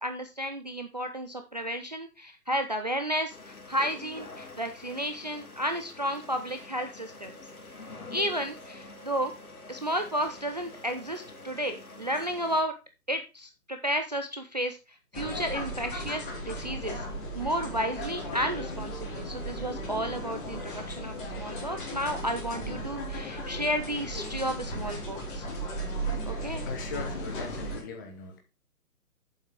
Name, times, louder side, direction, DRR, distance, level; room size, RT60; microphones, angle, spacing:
voice 1, 0.0-7.3 8.1-9.3 9.7-12.7 13.1-17.1 17.3-25.5 26.3-26.6, equal, 30° right, 6 dB, 0.5 m, -32 dB
sound 1, 3.3-12.6, left 3 dB, 65° left, 2.5 m, -46 dB
sound 2, 15.1-27.8, right 1 dB, 35° left, 3.0 m, -36 dB
voice 2, 26.6-28.4, left 4 dB, 10° left, 3 dB, 0.8 m, -39 dB
8.5 x 7.4 x 3.6 m, 0.28 s
figure-of-eight pair, 140°, 47 cm